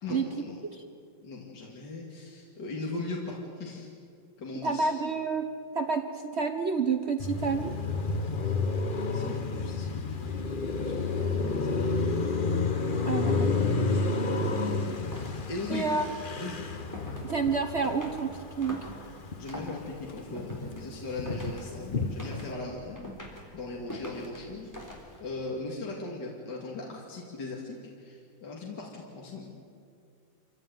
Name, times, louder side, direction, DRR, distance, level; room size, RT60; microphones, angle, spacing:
voice 1, 0.0-0.6 1.2-3.9 4.4-4.9 9.1-11.8 13.9-16.1 16.4-16.6 19.4-23.1 23.5-29.5, left 3 dB, 65° left, -1 dB, 3.0 m, -39 dB
voice 2, 4.6-7.8 13.0-13.5 15.7-16.1 17.2-18.8, right 4 dB, 45° right, 6 dB, 0.9 m, -29 dB
Car passing by, 7.2-19.7 20.0-22.5, left 3 dB, 35° left, 0.9 m, -30 dB
sound 1, 14.9-25.4, equal, 10° left, 3.6 m, -46 dB
26.5 x 15.5 x 9.3 m, 2.3 s
omnidirectional pair, 2.0 m